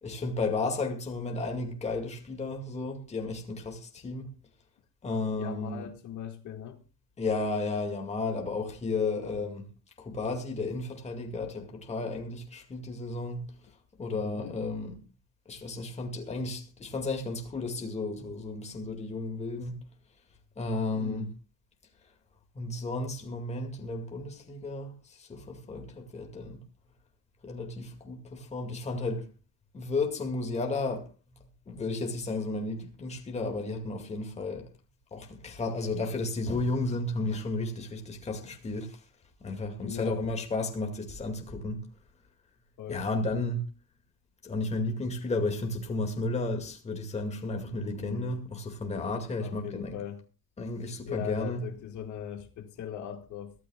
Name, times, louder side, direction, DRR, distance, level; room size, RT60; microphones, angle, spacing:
voice 1, 0.0-4.3 5.0-5.9 7.2-9.7 10.0-13.5 14.0-15.0 15.5-19.8 20.6-21.3 22.5-26.6 27.4-29.3 29.7-31.1 31.7-34.7 35.1-39.0 39.4-41.8 42.9-43.7 44.4-50.0 50.6-51.6, left 3 dB, 20° left, 2.2 m, -33 dB
voice 2, 5.4-6.8 14.4-14.6 20.9-21.3 39.8-40.2 42.8-43.1 48.0-48.4 49.3-50.2 51.1-53.5, left 10 dB, 60° left, 2.1 m, -39 dB
23.5 x 13.0 x 2.4 m
cardioid pair, 175°, 34 cm